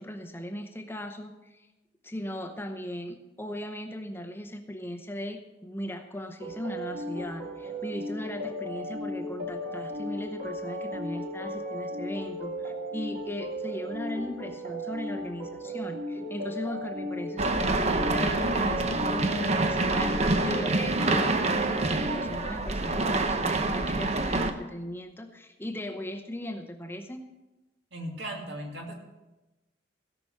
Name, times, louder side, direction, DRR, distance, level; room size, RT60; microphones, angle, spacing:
voice 1, 0.0-1.7 2.0-27.2, left 1 dB, 10° left, 5 dB, 0.8 m, -38 dB
sound 1, 6.4-22.2, equal, 55° right, 1.8 m, -35 dB
sound 2, 17.4-24.5, right 2 dB, 35° right, 0.8 m, -27 dB
voice 2, 27.9-28.9, right 1 dB, 70° right, 1 dB, 2.4 m, -37 dB
17.0 x 6.0 x 6.5 m, 1.0 s
head